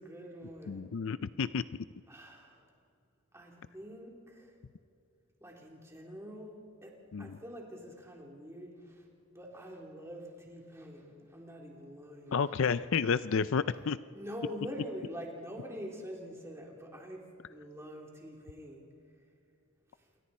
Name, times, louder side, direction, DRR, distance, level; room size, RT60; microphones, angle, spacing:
voice 1, 0.0-0.9 2.1-2.7 3.3-4.5 5.4-6.9 7.2-9.1 9.3-12.4 13.7-13.8 14.1-18.8, equal, 15° right, -1 dB, 3.4 m, -45 dB
voice 2, 0.7-1.6 7.1-7.4 12.3-14.0, left 6 dB, 60° left, 15 dB, 0.4 m, -30 dB
27.5 x 23.5 x 4.3 m, 2.5 s
head